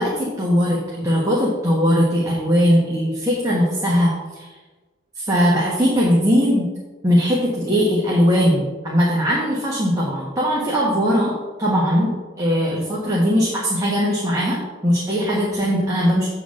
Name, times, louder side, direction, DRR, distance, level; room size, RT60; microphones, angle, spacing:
voice 1, 0.0-4.5 5.2-6.7 7.0-16.3, equal, 20° right, -5 dB, 1.3 m, -20 dB
8.1 x 4.0 x 6.3 m, 1.3 s
head